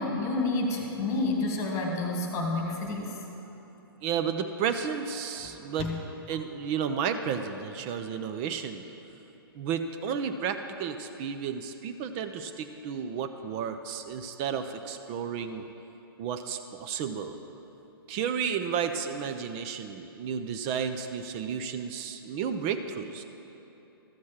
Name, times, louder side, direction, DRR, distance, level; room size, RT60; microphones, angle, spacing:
voice 1, 0.0-3.2 5.4-6.0, left 2 dB, 25° left, 1 dB, 1.8 m, -30 dB
voice 2, 4.0-5.9 6.3-8.8 9.5-15.6 16.2-17.4 18.1-23.2, right 7 dB, 25° right, 7 dB, 0.5 m, -32 dB
13.5 x 6.3 x 5.7 m, 3.0 s
figure-of-eight pair, 125°, 13 cm